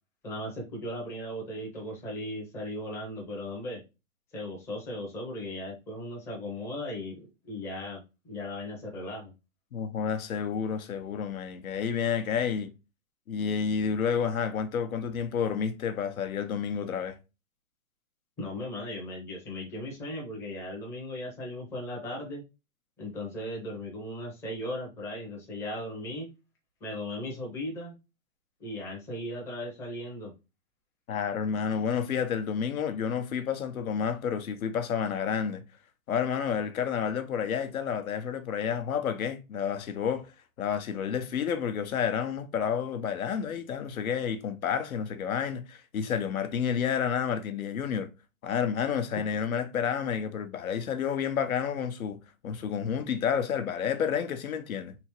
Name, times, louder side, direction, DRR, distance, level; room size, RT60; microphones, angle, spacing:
voice 1, 0.2-3.8 4.3-9.3 18.4-22.4 23.0-26.3 26.8-28.0 28.6-30.3, left 1 dB, 5° left, 0.5 m, -37 dB
voice 2, 9.7-12.7 13.3-17.2 31.1-35.6 36.1-40.3 40.6-48.1 48.4-55.0, left 7 dB, 80° left, 0.8 m, -30 dB
3.5 x 2.9 x 2.9 m
hypercardioid pair, 145°, 41 cm